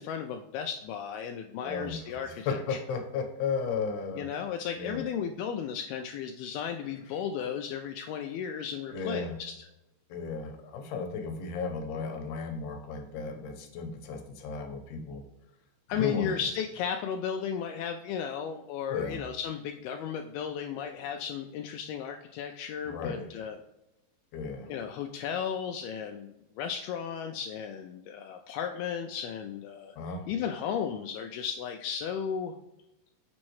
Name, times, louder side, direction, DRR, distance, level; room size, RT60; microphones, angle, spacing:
voice 1, 0.0-2.8 4.2-9.7 15.9-23.6 24.7-26.3 26.6-30.0 30.3-32.5, left 7 dB, 90° left, 4 dB, 2.1 m, -34 dB
voice 2, 1.6-4.3 4.8-5.1 8.9-9.3 10.1-15.2 15.9-16.4 18.9-19.3 22.8-23.3 24.3-24.7 30.0-30.2, left 5 dB, 75° left, 4 dB, 2.8 m, -35 dB
7.4 x 6.2 x 3.1 m, 0.92 s
omnidirectional pair, 4.9 m